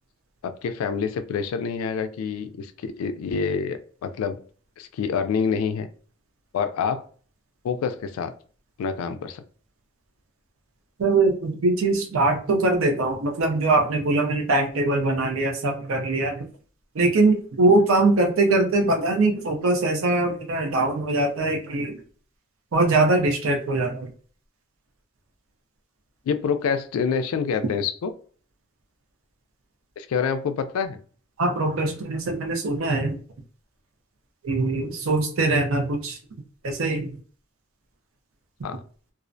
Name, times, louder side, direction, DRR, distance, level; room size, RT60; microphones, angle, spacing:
voice 1, 0.4-4.4 4.8-5.9 6.5-7.0 7.6-8.4 8.8-9.4 26.3-28.1 30.0-31.0 38.6-38.8, left 6 dB, 90° left, 13 dB, 0.3 m, -27 dB
voice 2, 11.0-16.4 16.9-21.9 22.7-24.1 31.4-33.2 34.4-36.2 36.6-37.1, right 2 dB, 75° right, 4 dB, 0.5 m, -22 dB
2.4 x 2.0 x 2.5 m, 0.43 s
head